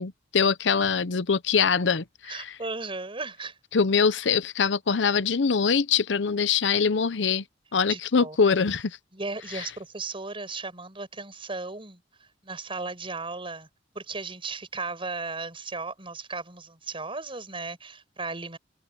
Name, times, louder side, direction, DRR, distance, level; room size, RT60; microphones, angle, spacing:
voice 1, 0.0-2.6 3.7-7.4 7.7-9.0 9.5-9.7, left 5 dB, 75° left, 0.7 m, -23 dB
voice 2, 2.3-3.6 7.9-8.4 9.1-12.0 12.4-13.7 13.9-18.6, right 3 dB, 30° right, 7.2 m, -35 dB
head